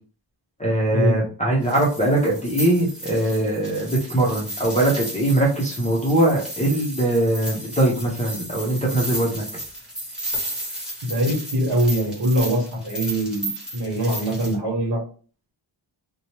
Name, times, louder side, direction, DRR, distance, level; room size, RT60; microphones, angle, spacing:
voice 1, 0.6-9.4, right 1 dB, 15° left, -5 dB, 0.5 m, -21 dB
sound 1, 1.6-14.5, right 1 dB, ahead, 1.0 m, -34 dB
voice 2, 11.0-13.5 13.7-15.0, right 1 dB, 55° right, -2 dB, 1.3 m, -22 dB
2.8 x 2.1 x 2.9 m, 0.39 s
wide cardioid pair, 155°, 48 cm